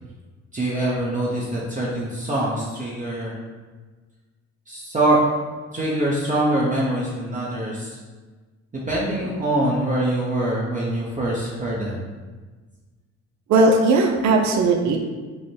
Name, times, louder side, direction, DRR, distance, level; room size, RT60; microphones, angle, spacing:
voice 1, 0.5-3.4 4.7-5.3 5.7-8.0 8.9-12.0, right 1 dB, 25° right, -6 dB, 0.8 m, -24 dB
voice 2, 13.5-15.0, right 3 dB, 65° right, 2 dB, 0.5 m, -17 dB
4.8 x 2.1 x 4.3 m, 1.3 s
cardioid pair, 90°, 30 cm